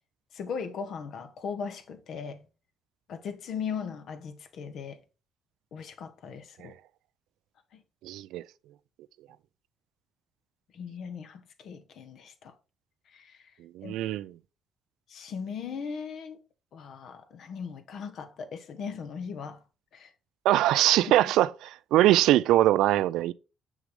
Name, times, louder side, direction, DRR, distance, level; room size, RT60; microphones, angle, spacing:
voice 1, 0.3-2.5 3.1-5.0 5.7-6.8 7.7-7.8 10.7-12.5 13.1-13.4 13.8-14.0 15.1-16.4 16.7-19.6 19.9-20.1, left 6 dB, 65° left, 1.0 m, -38 dB
voice 2, 8.0-8.4 13.7-14.3 20.5-23.3, right 14 dB, 90° right, 0.3 m, -22 dB
6.4 x 6.2 x 3.2 m
cardioid pair, 115°, 0 cm